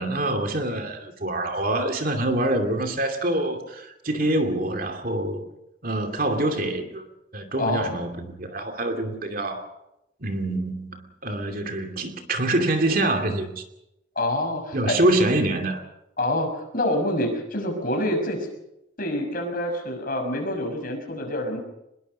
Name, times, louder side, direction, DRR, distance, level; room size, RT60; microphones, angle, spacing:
voice 1, 0.0-5.4 5.8-7.0 7.3-9.7 10.2-13.6 14.7-15.8, right 1 dB, 50° right, 5 dB, 2.6 m, -25 dB
voice 2, 7.6-7.9 14.1-15.0 16.2-18.5 19.0-21.6, left 1 dB, 45° left, 3 dB, 6.2 m, -26 dB
25.0 x 21.5 x 5.5 m, 0.86 s
head